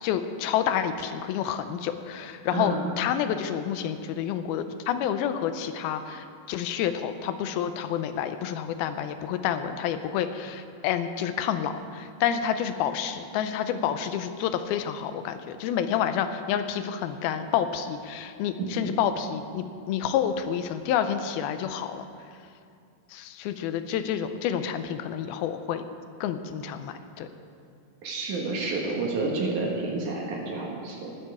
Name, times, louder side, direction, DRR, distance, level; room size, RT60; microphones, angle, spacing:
voice 1, 0.0-22.1 23.1-25.9 26.2-27.3, left 9 dB, 85° left, 9 dB, 2.5 m, -29 dB
voice 2, 2.5-2.9 18.7-18.9 28.0-31.1, right 3 dB, 60° right, -1 dB, 2.8 m, -29 dB
18.5 x 8.4 x 4.8 m, 2.4 s
omnidirectional pair, 4.3 m